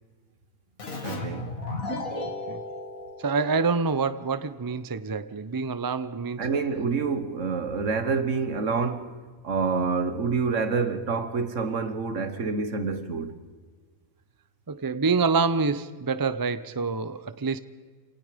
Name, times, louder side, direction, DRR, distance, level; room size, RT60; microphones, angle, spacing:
Keyboard (musical), 0.8-4.2, left 2 dB, 70° left, 2.6 m, -35 dB
voice 1, 1.0-1.5 6.4-9.1 9.4-13.4, right 5 dB, 60° right, 1.6 m, -27 dB
voice 2, 2.3-2.6 3.2-6.4 14.7-17.6, right 4 dB, 35° right, 0.3 m, -27 dB
28.0 x 19.0 x 5.1 m
omnidirectional pair, 1.5 m